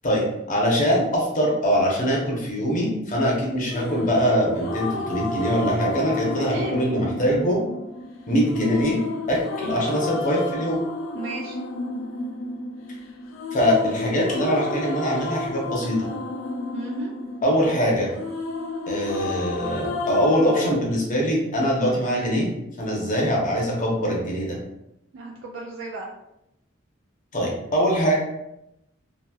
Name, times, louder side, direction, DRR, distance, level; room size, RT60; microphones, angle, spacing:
voice 1, 0.0-7.6 8.3-9.0 9.3-10.8 13.5-16.1 17.4-18.1 18.9-22.5 22.8-24.6 27.3-28.1, equal, 40° left, -2 dB, 0.8 m, -23 dB
sound 1, 3.7-20.8, left 2 dB, 80° left, 0.4 m, -31 dB
voice 2, 6.3-6.8 11.1-11.6 16.7-17.1 25.1-26.1, right 2 dB, 75° right, -2 dB, 0.4 m, -33 dB
2.9 x 2.6 x 2.3 m, 0.85 s
head